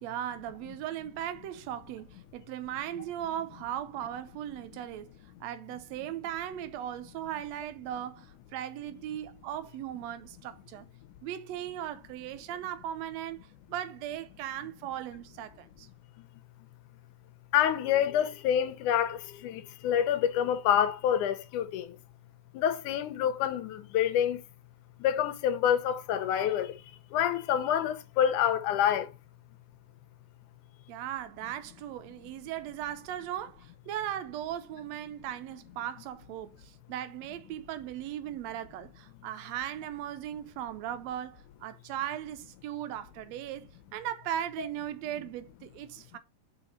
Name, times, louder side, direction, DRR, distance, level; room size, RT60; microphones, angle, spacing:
voice 1, 0.0-5.1 5.4-10.9 11.2-15.9 30.9-46.2, right 11 dB, 75° right, 1.7 m, -38 dB
voice 2, 17.5-21.9 22.5-24.4 25.0-26.7 27.1-29.1 44.6-44.7, left 10 dB, 80° left, 2.2 m, -27 dB
5.3 x 4.1 x 5.2 m
omnidirectional pair, 3.7 m